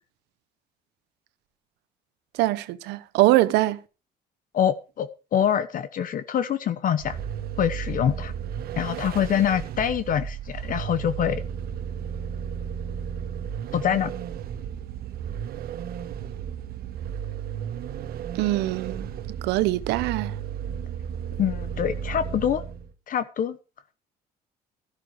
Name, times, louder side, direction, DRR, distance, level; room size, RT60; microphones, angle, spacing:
voice 1, 2.3-3.8 18.3-19.1 19.4-20.3, right 17 dB, 90° right, 1.0 m, -23 dB
voice 2, 4.5-7.2 7.6-8.3 8.8-11.4 13.7-14.1 21.4-22.6 23.1-23.6, left 9 dB, 55° left, 1.1 m, -25 dB
Vehicle, 7.0-22.9, right 8 dB, 65° right, 1.3 m, -34 dB
13.5 x 11.5 x 4.8 m
cardioid pair, 110°, 17 cm